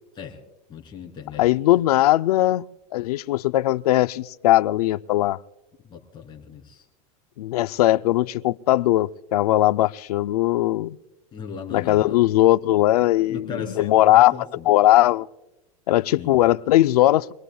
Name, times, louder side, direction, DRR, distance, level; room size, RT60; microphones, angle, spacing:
voice 1, 0.7-1.6 5.8-6.8 11.3-12.2 13.3-14.7 16.1-16.4, left 6 dB, 25° left, 3.3 m, -37 dB
voice 2, 1.4-2.6 2.9-5.4 7.4-11.0 11.7-14.3 14.7-15.3 15.9-17.3, left 15 dB, 90° left, 0.5 m, -19 dB
25.5 x 19.5 x 2.3 m
supercardioid pair, 140°, 19 cm